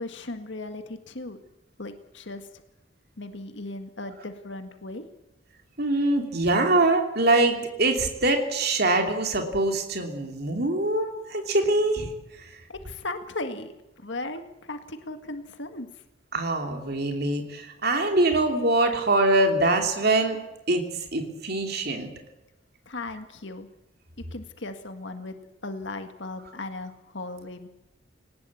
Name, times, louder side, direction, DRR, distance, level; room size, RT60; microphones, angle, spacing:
voice 1, 0.0-1.4 1.8-2.6 3.2-5.1 12.7-16.0 22.8-23.7 24.3-25.4 25.6-27.7, left 2 dB, 60° left, 7 dB, 1.8 m, -37 dB
voice 2, 5.8-12.5 16.3-20.4 20.7-22.1, right 2 dB, 50° right, 4 dB, 2.9 m, -24 dB
21.0 x 19.5 x 8.5 m, 0.95 s
head